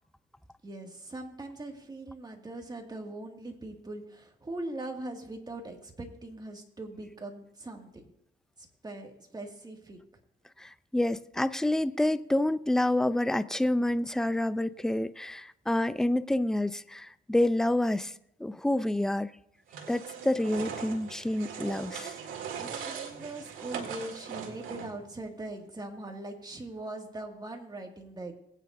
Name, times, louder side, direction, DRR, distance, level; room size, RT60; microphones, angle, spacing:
voice 1, 0.6-8.0 8.6-10.0 22.6-28.3, right 2 dB, 20° right, 2.1 m, -41 dB
voice 2, 10.6-18.1 18.4-19.3 19.9-22.1, left 1 dB, 5° left, 0.4 m, -28 dB
sound 1, 19.7-25.1, right 7 dB, 85° right, 2.0 m, -40 dB
20.5 x 9.2 x 2.6 m
cardioid pair, 90°, 20 cm